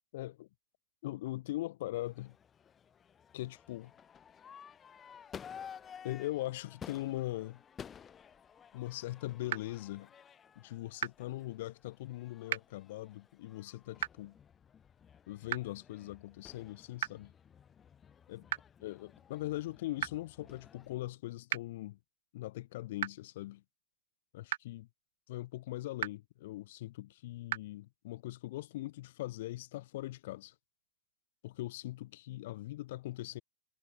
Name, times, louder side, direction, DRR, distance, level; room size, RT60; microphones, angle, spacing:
voice 1, 0.1-0.5 1.0-2.4 3.3-3.9 6.0-7.6 8.7-10.1 10.5-14.3 15.3-17.3 18.3-18.5 18.8-22.0 22.3-23.6 24.3-24.9 25.3-30.5 31.4-33.4, left 16 dB, 50° left, 1.4 m, -41 dB
Crowd / Fireworks, 1.9-20.9, left 7 dB, 20° left, 2.1 m, -54 dB
sound 1, 9.5-9.6 11.0-11.1 12.5-12.6 14.0-14.1 15.5-15.6 17.0-17.1 18.5-18.6 20.0-20.1 21.5-21.6 23.0-23.1 24.5-24.6 26.0-26.1 27.5-27.6, right 13 dB, 55° right, 0.7 m, -33 dB
figure-of-eight pair, 100°, 0 cm